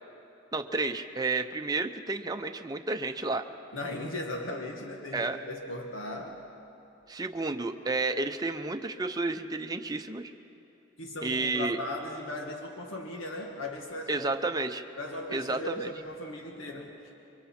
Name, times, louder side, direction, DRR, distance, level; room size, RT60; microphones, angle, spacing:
voice 1, 0.5-3.4 5.1-5.4 7.1-10.3 11.2-11.8 14.1-14.8 15.3-15.9, right 3 dB, 20° right, 5 dB, 0.6 m, -31 dB
voice 2, 3.7-6.5 11.0-14.5 15.0-16.9, left 1 dB, 85° left, 1 dB, 1.5 m, -37 dB
27.5 x 23.5 x 4.3 m, 2.9 s
head